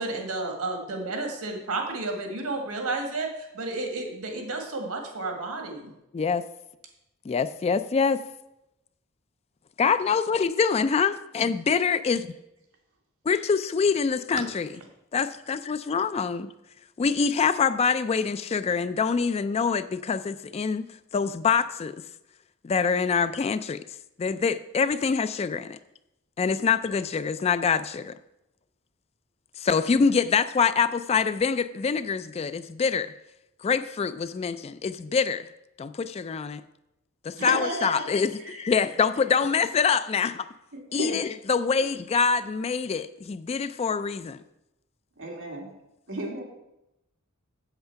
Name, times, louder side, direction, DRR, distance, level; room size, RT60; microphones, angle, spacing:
voice 1, 0.0-5.9, right 3 dB, 85° right, 3 dB, 1.8 m, -32 dB
voice 2, 6.1-6.4 7.3-8.2 9.8-12.3 13.3-14.7 15.1-16.5 17.0-20.9 21.1-22.0 22.6-23.8 24.2-25.8 26.4-28.1 29.6-33.1 33.6-35.5 35.8-36.6 37.2-40.5 40.9-44.4, left 5 dB, 30° left, 13 dB, 0.3 m, -25 dB
voice 3, 37.4-38.1 38.4-38.6 41.0-41.2 45.2-45.7 46.1-46.4, right 1 dB, 60° right, 0 dB, 2.3 m, -32 dB
8.0 x 7.5 x 5.7 m, 0.89 s
head